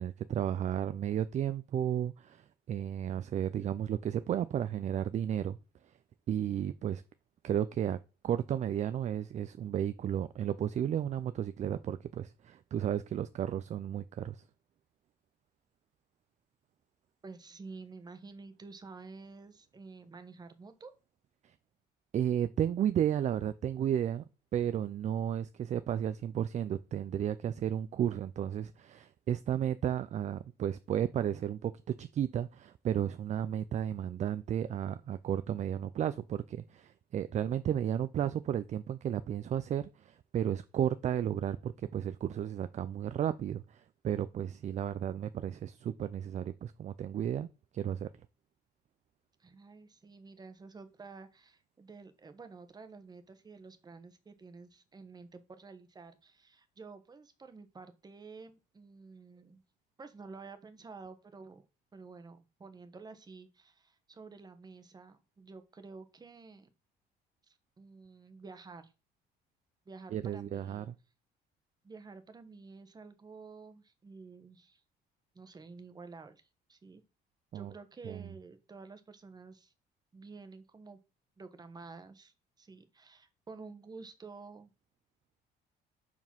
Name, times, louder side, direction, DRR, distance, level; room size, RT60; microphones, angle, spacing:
voice 1, 0.0-5.6 6.3-7.0 7.4-8.0 8.2-14.4 22.1-24.2 24.5-31.7 32.0-47.5 47.7-48.1 70.1-70.9 77.5-77.7 78.1-78.3, right 10 dB, 40° right, 0.5 m, -33 dB
voice 2, 17.2-20.9 49.4-59.6 60.0-61.6 61.9-66.7 67.5-68.9 69.8-70.9 71.8-74.8 75.3-77.0 77.5-79.7 80.1-81.0 81.4-84.7, right 4 dB, 25° right, 1.1 m, -50 dB
5.4 x 4.9 x 6.0 m
cardioid pair, 115°, 18 cm